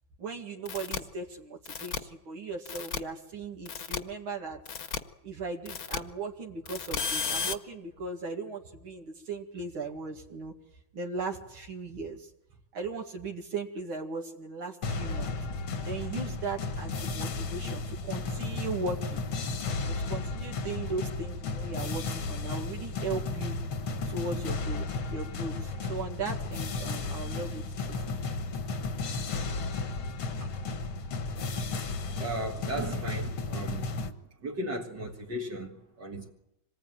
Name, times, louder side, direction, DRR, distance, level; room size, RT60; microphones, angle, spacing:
voice 1, 0.2-4.6 5.2-10.5 10.9-12.3 12.7-15.3 15.8-19.2 19.9-23.6 24.0-28.0, right 3 dB, 80° right, 2.9 m, -37 dB
sound 1, 0.7-1.0 1.7-2.0 2.7-3.0 3.7-4.0 4.7-5.0 5.7-6.0 6.7-7.5, left 6 dB, 50° left, 1.4 m, -33 dB
sound 2, 14.8-34.1, left 3 dB, 85° left, 2.3 m, -34 dB
voice 2, 32.1-33.9 34.4-36.3, right 1 dB, 55° right, 2.4 m, -36 dB
26.0 x 19.0 x 9.0 m
omnidirectional pair, 2.2 m